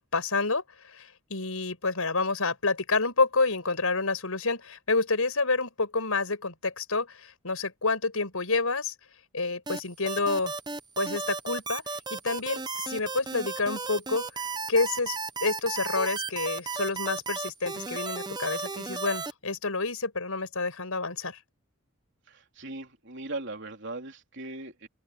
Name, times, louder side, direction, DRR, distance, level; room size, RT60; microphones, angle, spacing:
voice 1, 0.0-8.9 9.3-10.5 11.0-11.8 12.1-14.2 14.7-15.2 15.4-21.4, left 3 dB, 90° left, 5.2 m, -28 dB
sound 1, 9.7-19.3, right 4 dB, 20° right, 0.9 m, -34 dB
voice 2, 22.3-24.9, right 2 dB, 55° right, 3.7 m, -39 dB
open air
head